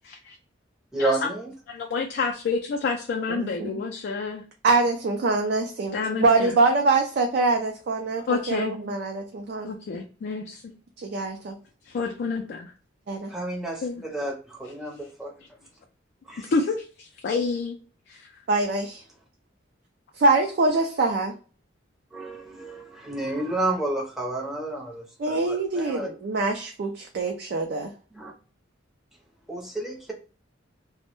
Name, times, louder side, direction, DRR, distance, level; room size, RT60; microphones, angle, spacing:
voice 1, 0.0-0.4 1.0-1.3 1.7-4.4 5.9-6.6 8.3-8.7 9.6-10.6 11.8-12.7 13.8-14.0 16.4-17.8 18.1-18.3, left 4 dB, 55° left, 4 dB, 0.3 m, -29 dB
voice 2, 0.9-1.5 13.3-15.3 16.3-16.5 22.1-26.1 28.1-28.3 29.5-30.1, right 2 dB, ahead, -2 dB, 0.6 m, -30 dB
voice 3, 3.3-3.8 4.6-9.7 11.0-11.5 13.1-13.3 18.5-19.0 20.2-21.3 25.2-27.9, right 3 dB, 55° right, 2 dB, 0.3 m, -24 dB
2.1 x 2.0 x 2.9 m, 0.37 s
head